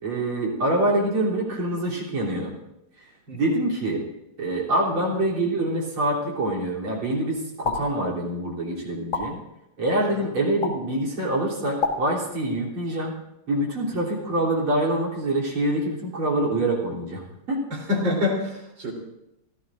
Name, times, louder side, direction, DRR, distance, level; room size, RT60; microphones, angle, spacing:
voice 1, 0.0-2.5 3.3-4.0 4.4-9.4 9.8-13.1 13.5-17.2 17.5-17.6, right 1 dB, 90° right, -3 dB, 4.2 m, -25 dB
mouth pops - dry, 7.6-7.8 9.1-9.2 10.6-10.7 11.8-11.9, left 4 dB, 70° left, 2.6 m, -25 dB
voice 2, 17.7-18.9, left 2 dB, 65° right, -1 dB, 4.4 m, -27 dB
27.5 x 15.5 x 2.5 m, 0.87 s
omnidirectional pair, 2.3 m